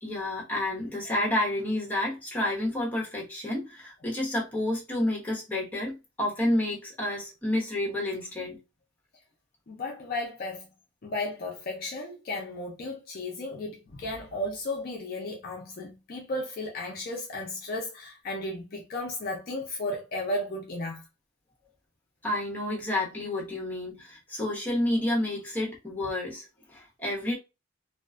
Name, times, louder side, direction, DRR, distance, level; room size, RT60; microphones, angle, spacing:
voice 1, 0.0-8.6 22.2-27.3, left 1 dB, 10° left, 0.7 m, -30 dB
voice 2, 9.7-10.7 11.0-21.0, left 1 dB, 40° left, 0.4 m, -34 dB
2.3 x 2.2 x 2.4 m
head